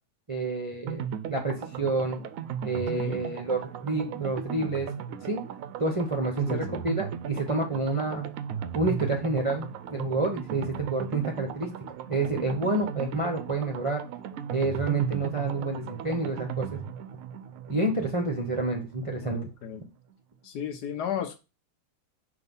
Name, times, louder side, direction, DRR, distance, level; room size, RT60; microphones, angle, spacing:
voice 1, 0.3-2.2 2.6-4.9 5.3-5.4 5.8-8.3 8.7-11.7 12.1-14.0 14.5-16.8 17.7-19.5, right 2 dB, 30° right, 0 dB, 0.5 m, -29 dB
sound 1, 0.9-19.5 19.8-19.9 20.1-20.2, right 8 dB, 70° right, 0.8 m, -37 dB
voice 2, 2.9-3.3 6.5-6.8 19.2-19.8 20.4-21.4, left 7 dB, 70° left, 7 dB, 1.4 m, -34 dB
5.9 x 3.0 x 5.3 m, 0.29 s
omnidirectional pair, 1.8 m